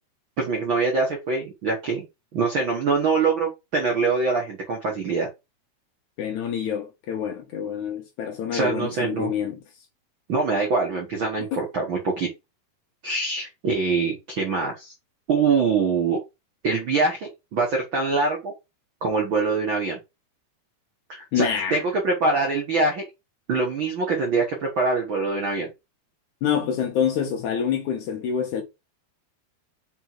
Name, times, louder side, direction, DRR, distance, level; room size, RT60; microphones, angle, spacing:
voice 1, 0.4-2.0 2.3-5.3 8.5-9.3 10.3-12.3 13.0-14.9 15.3-16.2 16.6-18.5 19.0-20.0 21.1-23.0 23.5-25.7, right 4 dB, 70° right, 1.1 m, -24 dB
voice 2, 6.2-9.6 11.5-11.6 21.3-21.8 26.4-28.6, left 8 dB, 70° left, 1.9 m, -27 dB
5.4 x 4.2 x 4.5 m
omnidirectional pair, 4.3 m